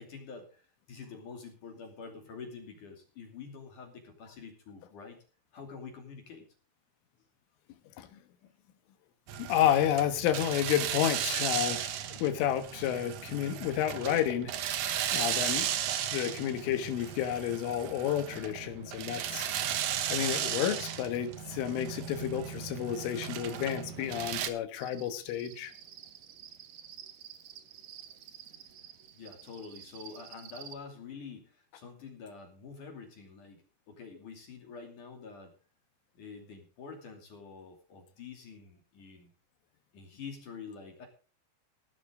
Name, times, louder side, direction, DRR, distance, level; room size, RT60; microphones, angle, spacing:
voice 1, 0.0-5.2 5.5-6.5 29.1-35.5 36.1-39.3 39.9-41.1, left 5 dB, 45° left, 3 dB, 3.7 m, -47 dB
sound 1, 9.3-24.5, right 10 dB, 70° right, 2.1 m, -35 dB
voice 2, 9.4-14.5 15.1-15.7 16.1-19.5 20.1-25.7, left 10 dB, 85° left, 9 dB, 3.9 m, -30 dB
Cricket, 24.8-30.7, right 9 dB, 90° right, 1.6 m, -50 dB
17.0 x 12.0 x 3.8 m, 0.37 s
omnidirectional pair, 5.5 m